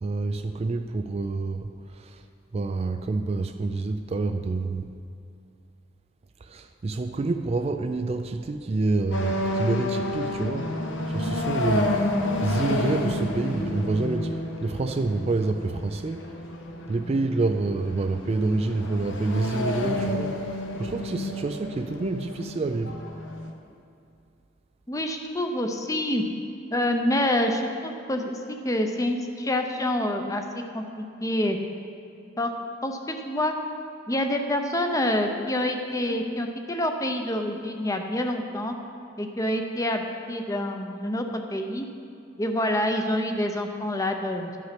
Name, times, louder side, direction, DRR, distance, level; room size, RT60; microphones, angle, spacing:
voice 1, 0.0-1.7 2.5-4.9 6.5-10.7 11.1-11.9 12.4-14.3 14.6-16.3 16.9-20.3 20.8-23.0, right 3 dB, 30° right, 7 dB, 0.3 m, -27 dB
sound 1, 9.1-23.5, left 1 dB, 65° left, 1.0 m, -30 dB
voice 2, 24.9-26.2 26.7-31.6 32.4-32.5 32.8-33.5 34.1-38.7 39.2-41.9 42.4-44.6, left 1 dB, 15° left, 5 dB, 0.7 m, -27 dB
12.5 x 5.8 x 6.0 m, 2.5 s
head